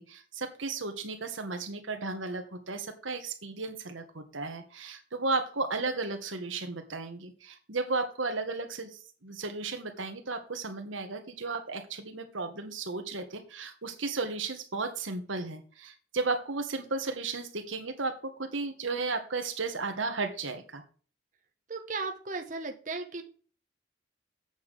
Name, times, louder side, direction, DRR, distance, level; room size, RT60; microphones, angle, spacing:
voice 1, 0.0-20.8, right 3 dB, 85° right, 6 dB, 1.6 m, -34 dB
voice 2, 21.7-23.2, right 3 dB, 40° right, 4 dB, 1.1 m, -36 dB
8.3 x 5.7 x 6.9 m, 0.41 s
head